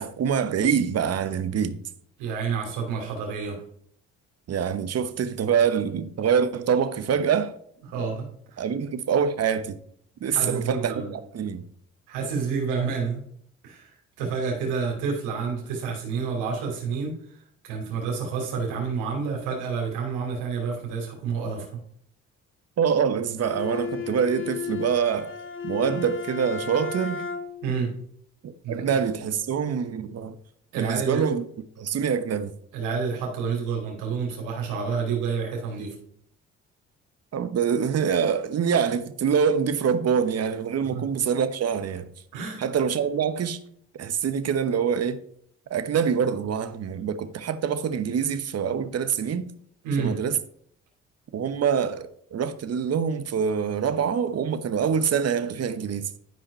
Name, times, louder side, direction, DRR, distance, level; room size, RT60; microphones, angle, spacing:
voice 1, 0.0-1.8 4.5-7.5 8.6-9.8 10.2-11.6 22.8-25.3 25.6-27.2 28.4-30.4 30.7-31.4 31.8-32.5 37.3-42.1 42.6-43.6 43.9-45.2 45.7-49.5 50.0-50.4 51.3-56.1, right 7 dB, 55° right, 1.0 m, -25 dB
voice 2, 2.2-3.6 7.9-8.2 8.5-8.6 10.3-11.1 12.1-13.2 13.6-17.1 17.6-21.6 27.6-27.9 28.6-28.9 30.7-31.3 32.7-35.9 40.9-41.0 42.3-42.7 49.8-50.2, right 5 dB, 85° right, 3.0 m, -29 dB
Bowed string instrument, 23.4-27.7, left 6 dB, 40° left, 1.3 m, -34 dB
11.5 x 5.0 x 4.3 m
hypercardioid pair, 50°, 31 cm